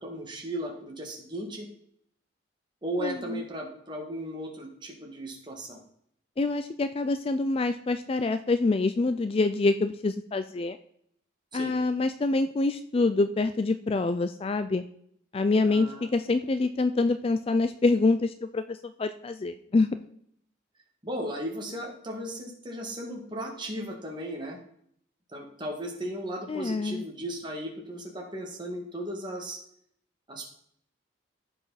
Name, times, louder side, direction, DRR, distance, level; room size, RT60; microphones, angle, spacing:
voice 1, 0.0-1.7 2.8-5.8 11.5-11.7 15.6-16.1 21.0-24.6 25.3-29.6 30.3-30.6, right 1 dB, 25° right, 1 dB, 1.9 m, -36 dB
voice 2, 3.0-3.4 6.4-10.8 11.5-14.8 15.3-19.9 26.5-27.0, left 3 dB, 30° left, 10 dB, 0.3 m, -26 dB
14.5 x 5.0 x 4.1 m, 0.66 s
head